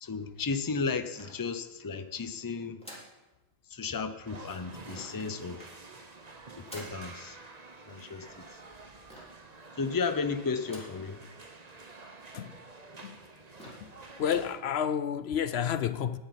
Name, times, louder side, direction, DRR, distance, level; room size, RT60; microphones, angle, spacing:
voice 1, 0.0-2.8 3.7-5.7 6.6-7.4 7.9-8.4 9.8-11.2, left 4 dB, 25° left, 0.6 m, -34 dB
sound 1, 1.1-1.9 2.8-3.2 4.9-5.3 6.7-7.1 9.1-9.5 10.6-11.1 11.5-11.6 11.9-12.0 12.7-12.8 13.2-13.3 13.6-13.9 14.2-14.6, equal, 5° left, 3.5 m, -49 dB
sound 2, 4.2-14.6, right 3 dB, 40° right, 1.2 m, -49 dB
voice 2, 14.2-16.2, left 8 dB, 75° left, 0.9 m, -30 dB
10.5 x 8.3 x 9.7 m
omnidirectional pair, 1.1 m